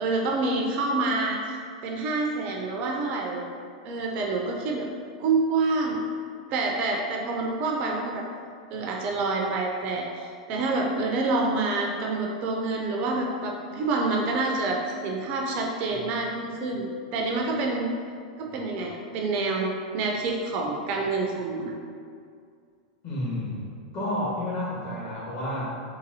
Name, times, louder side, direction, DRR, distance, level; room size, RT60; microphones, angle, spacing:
voice 1, 0.0-1.6 1.8-3.4 3.8-4.9 5.2-6.0 6.5-8.2 8.7-17.9 18.4-21.7, right 3 dB, 40° right, 0 dB, 0.4 m, -27 dB
voice 2, 23.0-25.8, left 1 dB, 40° left, -6 dB, 1.2 m, -31 dB
3.9 x 2.6 x 2.6 m, 2.2 s
figure-of-eight pair, 90°, 3 cm